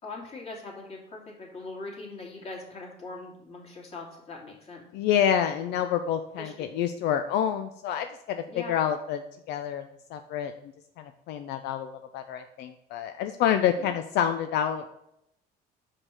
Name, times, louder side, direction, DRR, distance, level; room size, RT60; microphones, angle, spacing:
voice 1, 0.0-4.8 6.4-6.7 8.5-8.8 13.8-13.9, left 3 dB, 35° left, -2 dB, 2.6 m, -41 dB
voice 2, 4.9-9.2 9.5-9.8 10.1-10.5 11.0-14.8, left 9 dB, 80° left, 8 dB, 0.5 m, -28 dB
5.6 x 5.1 x 6.3 m, 0.80 s
cardioid pair, 110°, 17 cm